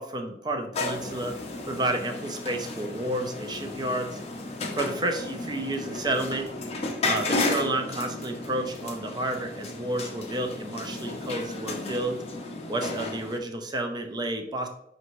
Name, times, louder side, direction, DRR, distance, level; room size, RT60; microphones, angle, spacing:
voice 1, 0.0-1.4 1.7-4.2 4.7-6.5 7.0-12.2 12.7-14.7, right 1 dB, 25° right, 4 dB, 0.5 m, -30 dB
sound 1, 0.7-13.4, left 2 dB, 35° left, 0.5 m, -33 dB
5.3 x 2.6 x 3.0 m, 0.80 s
head